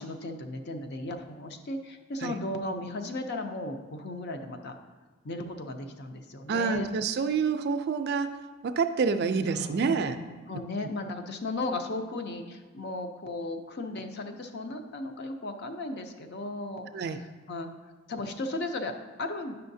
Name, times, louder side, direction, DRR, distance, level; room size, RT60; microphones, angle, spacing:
voice 1, 0.0-4.8 5.2-6.9 9.5-16.9 17.5-17.7 18.1-19.5, left 2 dB, 50° left, 6 dB, 0.6 m, -36 dB
voice 2, 6.5-10.2 16.9-17.2, right 5 dB, 50° right, 9 dB, 0.4 m, -28 dB
9.6 x 5.6 x 2.7 m, 1.3 s
head